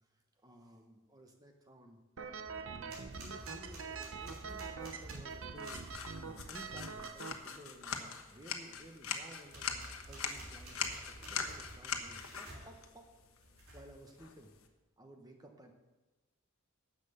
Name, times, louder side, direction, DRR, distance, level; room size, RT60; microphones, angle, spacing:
voice 1, 0.0-2.0 2.6-5.9 6.2-13.1 13.4-14.5 15.0-15.7, right 1 dB, 15° right, 3 dB, 1.0 m, -56 dB
sound 1, 2.2-7.3, right 5 dB, 60° right, 0.7 m, -44 dB
sound 2, 2.5-6.3 9.5-12.7 13.4-14.0, right 1 dB, 80° right, 3.5 m, -51 dB
sound 3, 5.6-14.7, left 6 dB, 75° left, 1.2 m, -43 dB
10.5 x 7.7 x 6.7 m, 1.2 s
head